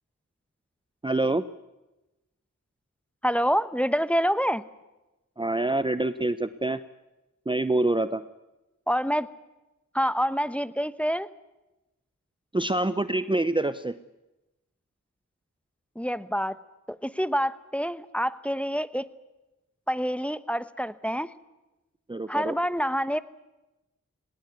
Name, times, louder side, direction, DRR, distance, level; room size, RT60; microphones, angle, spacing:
voice 1, 1.0-1.4 5.4-6.8 7.5-8.2 12.5-13.9 22.1-22.5, right 2 dB, 15° right, 12 dB, 0.7 m, -26 dB
voice 2, 3.2-4.6 8.9-9.3 9.9-11.3 16.0-16.6 17.0-19.1 19.9-21.3 22.3-23.2, equal, 5° left, 13 dB, 0.9 m, -27 dB
19.0 x 19.0 x 9.6 m, 1.0 s
cardioid pair, 50°, 31 cm